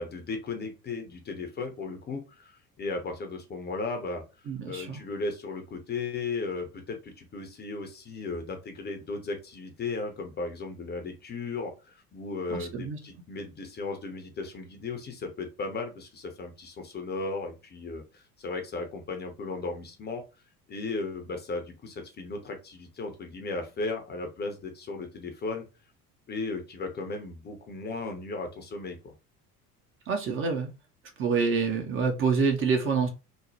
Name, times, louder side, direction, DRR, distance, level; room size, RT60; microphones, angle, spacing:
voice 1, 0.0-20.2 20.7-25.6 26.3-29.1, left 3 dB, 25° left, 0.6 m, -36 dB
voice 2, 4.5-5.0 12.5-13.0 30.1-30.7 31.2-33.1, right 5 dB, 30° right, 0.5 m, -27 dB
3.0 x 2.1 x 2.7 m
figure-of-eight pair, 65°, 45 cm